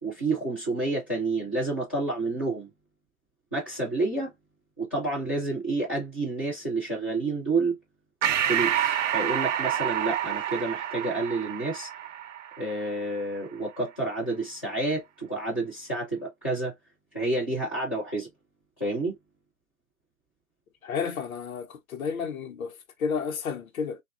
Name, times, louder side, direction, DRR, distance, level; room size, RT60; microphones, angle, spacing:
voice 1, 0.0-2.7 3.5-4.3 4.8-7.8 8.4-11.9 12.6-16.7 17.1-18.3 18.8-19.1, right 2 dB, 10° left, 0.4 m, -29 dB
Breathing, 8.2-13.1, right 10 dB, 60° right, 0.5 m, -28 dB
voice 2, 20.8-24.0, left 6 dB, 75° left, 0.8 m, -32 dB
3.0 x 2.3 x 2.3 m
hypercardioid pair, 150°, 43 cm